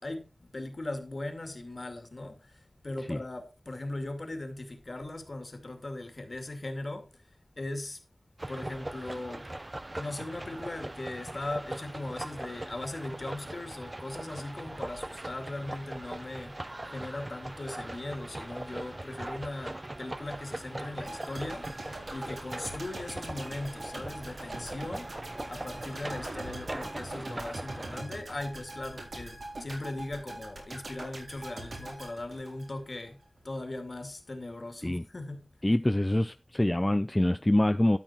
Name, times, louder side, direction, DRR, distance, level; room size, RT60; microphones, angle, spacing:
voice 1, 0.0-7.2 7.6-8.0 8.5-9.5 10.0-16.5 16.8-21.7 22.1-33.2 33.4-35.5, left 2 dB, 50° left, 2.3 m, -39 dB
sound 1, 8.4-28.0, right 1 dB, 30° right, 0.5 m, -41 dB
sound 2, 21.1-33.1 33.4-33.5, right 2 dB, 85° right, 4.0 m, -43 dB
voice 2, 35.6-38.0, left 1 dB, 20° left, 0.5 m, -25 dB
12.5 x 6.1 x 4.4 m
wide cardioid pair, 75°, 0 cm